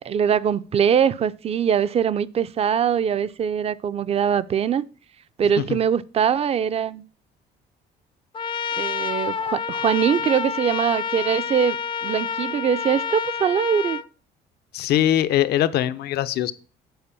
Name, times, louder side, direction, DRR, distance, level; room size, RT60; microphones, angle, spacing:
voice 1, 0.0-4.8 5.4-7.0 8.7-14.0, right 8 dB, 35° right, 0.5 m, -22 dB
Trumpet, 8.3-14.0, left 6 dB, 30° left, 0.4 m, -28 dB
voice 2, 14.7-16.5, left 12 dB, 75° left, 0.7 m, -22 dB
7.9 x 4.5 x 6.9 m
cardioid pair, 110°, 17 cm